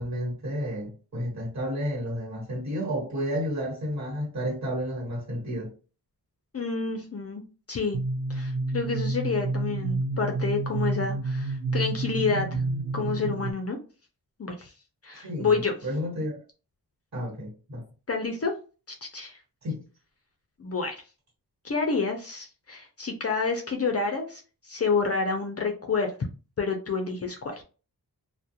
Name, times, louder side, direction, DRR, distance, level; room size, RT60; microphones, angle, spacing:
voice 1, 0.0-5.7 15.2-16.4 17.1-17.8 19.6-19.8, equal, 45° right, 1.5 m, -31 dB
voice 2, 6.5-7.4 7.7-8.0 8.3-12.6 12.9-13.8 14.4-14.7 15.0-15.7 18.1-18.5 19.0-19.4 20.6-20.9 21.6-26.1 26.6-27.6, left 4 dB, 40° left, 0.5 m, -29 dB
sound 1, 7.9-13.5, right 2 dB, 75° right, 0.6 m, -29 dB
2.3 x 2.1 x 2.7 m
wide cardioid pair, 135°, 39 cm